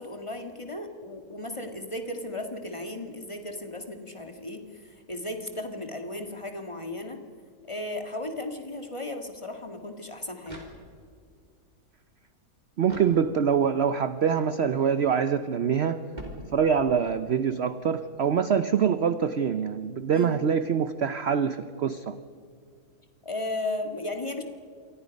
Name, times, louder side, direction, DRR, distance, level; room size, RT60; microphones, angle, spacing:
voice 1, 0.0-7.2 7.7-10.6 20.1-20.4 23.2-24.4, left 2 dB, 20° left, 4 dB, 1.8 m, -35 dB
sound 1, 10.4-11.3 12.8-13.7 16.1-17.1, right 1 dB, 25° right, 3.8 m, -44 dB
voice 2, 12.8-16.0 16.5-22.2, right 7 dB, 55° right, 12 dB, 0.8 m, -25 dB
28.0 x 23.0 x 5.3 m, 2.2 s
omnidirectional pair, 1.7 m